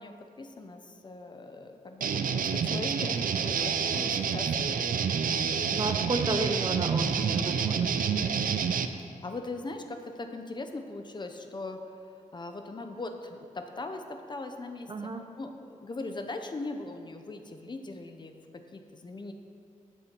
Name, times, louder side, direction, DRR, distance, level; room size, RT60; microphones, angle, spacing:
voice 1, 0.0-6.0 9.0-15.1 15.4-19.3, left 2 dB, 35° left, 5 dB, 0.8 m, -40 dB
sound 1, 2.0-8.9, right 6 dB, 85° right, 0.5 m, -28 dB
voice 2, 5.7-7.9 14.9-15.2, right 3 dB, 35° right, 6 dB, 0.6 m, -32 dB
14.5 x 6.9 x 4.5 m, 2.5 s
wide cardioid pair, 155°, 14 cm